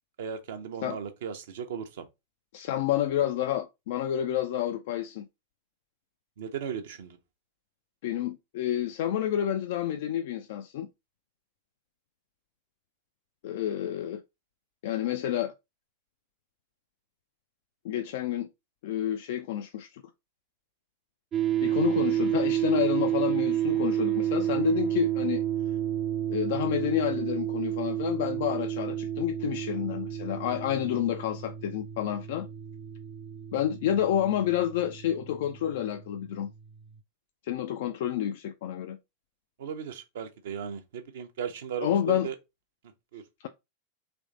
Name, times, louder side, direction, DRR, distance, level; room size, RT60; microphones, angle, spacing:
voice 1, 0.2-2.0 6.4-7.2 39.6-42.3 43.1-43.2, right 7 dB, 60° right, 0.7 m, -36 dB
voice 2, 2.5-5.3 8.0-10.9 13.4-14.2 14.8-15.5 17.8-18.5 18.8-20.0 21.6-25.4 26.3-32.5 33.5-36.5 37.5-39.0 41.8-42.3, left 11 dB, 55° left, 0.3 m, -29 dB
sound 1, 21.3-36.5, right 11 dB, 30° right, 0.4 m, -30 dB
3.5 x 3.1 x 3.8 m
figure-of-eight pair, 90°, 0 cm